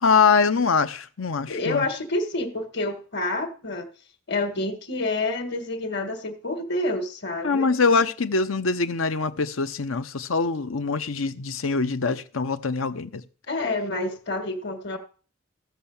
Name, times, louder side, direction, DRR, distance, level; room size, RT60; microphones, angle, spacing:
voice 1, 0.0-1.9 7.4-13.2, left 4 dB, 85° left, 0.9 m, -23 dB
voice 2, 1.5-3.9 4.3-7.8 13.5-15.0, left 2 dB, 55° left, 1.8 m, -28 dB
14.5 x 5.7 x 7.2 m
head